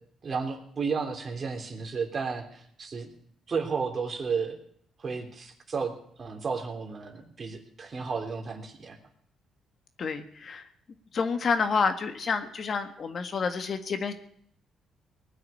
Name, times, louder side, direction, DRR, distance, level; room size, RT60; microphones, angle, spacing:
voice 1, 0.2-3.1 3.5-4.6 5.0-9.0, right 5 dB, 40° right, 4 dB, 3.1 m, -33 dB
voice 2, 10.0-10.6 11.1-14.1, left 5 dB, 50° left, 8 dB, 1.6 m, -29 dB
19.5 x 6.5 x 10.0 m, 0.65 s
cardioid pair, 90°, 0 cm